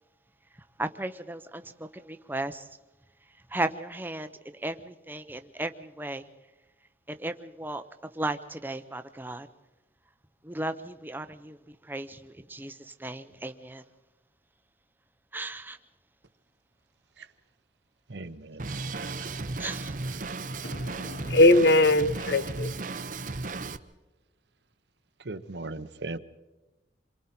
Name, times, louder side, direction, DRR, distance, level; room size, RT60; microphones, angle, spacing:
voice 1, 0.8-2.7 3.5-6.3 7.1-7.8 8.1-9.5 10.4-13.8 15.3-15.8 19.6-20.0, right 2 dB, 10° right, 9 dB, 0.8 m, -35 dB
voice 2, 18.1-19.3 25.2-26.2, right 2 dB, 75° right, 11 dB, 0.9 m, -39 dB
Drum kit, 18.6-23.8, right 3 dB, 45° right, 0.8 m, -35 dB
voice 3, 20.6-22.7, left 1 dB, 65° left, 14 dB, 0.8 m, -21 dB
27.5 x 23.5 x 4.4 m, 1.1 s
head